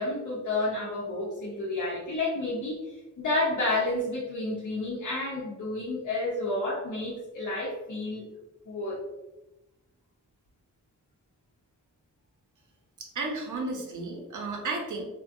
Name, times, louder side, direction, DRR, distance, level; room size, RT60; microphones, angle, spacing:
voice 1, 0.0-8.2 8.7-9.0, left 2 dB, 70° left, -7 dB, 0.7 m, -30 dB
voice 2, 13.0-15.0, right 3 dB, 70° right, 0 dB, 0.6 m, -33 dB
2.3 x 2.1 x 2.5 m, 1.0 s
wide cardioid pair, 95°, 31 cm